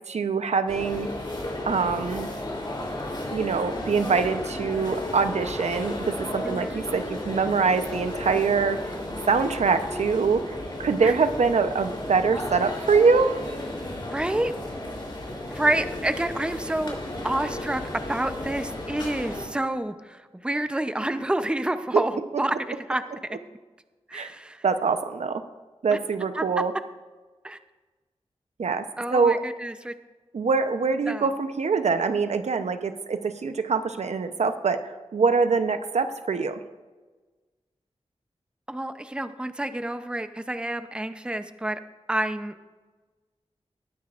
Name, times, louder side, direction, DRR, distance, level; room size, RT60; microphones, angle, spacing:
voice 1, 0.1-1.1 1.7-2.3 3.3-8.8 9.3-13.4 21.9-22.0 24.1-24.3 24.6-25.4 25.8-26.7 28.6-28.8 29.1-29.4 30.3-36.6, right 5 dB, 80° right, 9 dB, 0.7 m, -24 dB
sound 1, 0.7-19.4, left 1 dB, 45° left, 3.4 m, -34 dB
voice 2, 6.4-6.8 11.0-11.1 14.1-14.5 15.5-17.0 17.2-17.8 18.1-22.1 22.4-22.6 22.9-23.0 24.1-24.6 25.9-26.0 26.4-26.5 27.4-27.6 29.0-29.9 31.1-31.3 38.7-41.8 42.1-42.5, right 1 dB, 10° right, 10 dB, 0.6 m, -28 dB
20.0 x 9.4 x 2.5 m, 1.3 s
wide cardioid pair, 90°, 11 cm